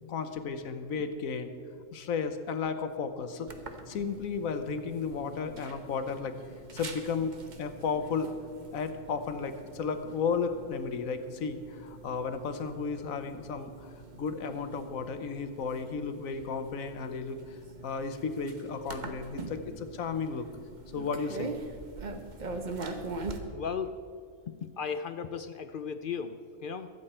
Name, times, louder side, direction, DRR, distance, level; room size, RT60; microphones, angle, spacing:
voice 1, 0.1-1.5 1.9-3.5 3.9-6.3 6.7-8.3 8.7-17.6 17.8-20.5 20.9-21.5, left 5 dB, 90° left, 9 dB, 1.3 m, -34 dB
sound 1, 3.5-23.4, right 3 dB, 40° right, 1.0 m, -44 dB
voice 2, 23.5-23.9 24.5-26.9, left 6 dB, 60° left, 10 dB, 0.5 m, -36 dB
22.5 x 8.1 x 4.4 m, 2.3 s
omnidirectional pair, 1.4 m